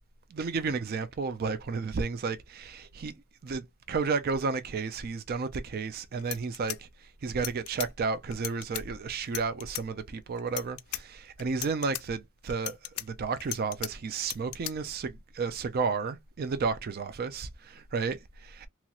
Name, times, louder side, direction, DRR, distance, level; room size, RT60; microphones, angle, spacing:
voice 1, 0.3-3.1 3.4-18.7, right 4 dB, 45° right, 0.4 m, -32 dB
sound 1, 5.9-6.0 6.2-7.9 8.3-8.8 9.2-9.8 10.4-11.0 11.4-12.0 12.5-13.9 14.2-14.7, left 15 dB, 75° left, 0.4 m, -37 dB
2.9 x 2.9 x 2.3 m
head